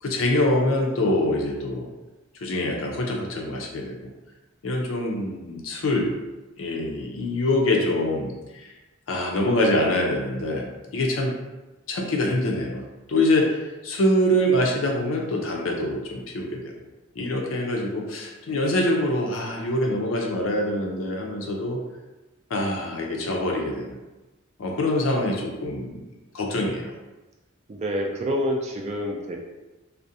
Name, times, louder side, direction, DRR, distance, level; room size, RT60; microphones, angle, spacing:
voice 1, 0.0-1.9 2.4-4.1 4.6-6.1 6.6-8.7 9.1-11.3 11.9-16.7 17.2-21.8 22.5-24.0 24.6-26.0 26.3-26.9, left 1 dB, 85° left, 0 dB, 0.5 m, -25 dB
voice 2, 27.7-29.4, equal, 35° right, 1 dB, 0.3 m, -27 dB
2.4 x 2.1 x 2.7 m, 1.1 s
head